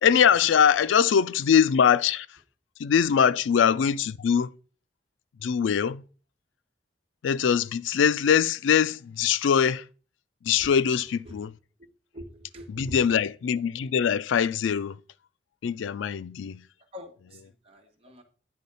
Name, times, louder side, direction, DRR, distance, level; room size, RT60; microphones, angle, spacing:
voice 1, 0.0-2.3 2.8-4.5 5.4-6.0 7.2-9.8 10.5-11.5 12.7-14.9 15.6-16.6, left 7 dB, 90° left, 0.4 m, -22 dB
voice 2, 12.1-13.0 16.9-18.2, equal, 30° right, 1.6 m, -44 dB
9.4 x 4.1 x 5.4 m
head